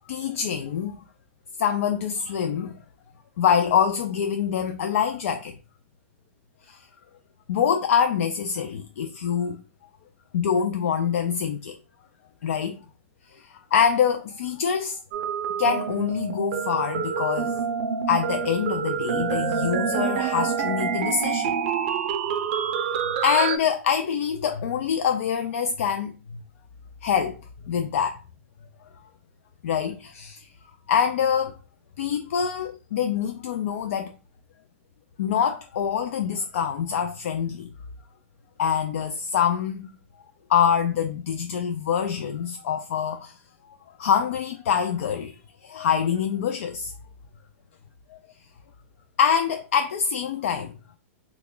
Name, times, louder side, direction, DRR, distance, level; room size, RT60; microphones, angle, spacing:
voice 1, 0.1-1.0 1.6-2.7 3.4-5.5 6.6-6.9 7.5-9.6 10.3-11.8 12.4-12.8 13.3-15.0 15.6-17.6 18.1-21.6 23.2-26.2 27.0-27.4 27.7-28.2 29.6-30.5 30.9-31.6 32.0-34.1 35.2-37.7 38.6-39.9 40.5-43.4 44.0-46.9 48.1-48.2 49.2-50.7, left 7 dB, 75° left, 0.4 m, -25 dB
sound 1, 15.1-23.6, right 7 dB, 45° right, 0.4 m, -27 dB
2.9 x 2.3 x 3.7 m
supercardioid pair, 160°, 7 cm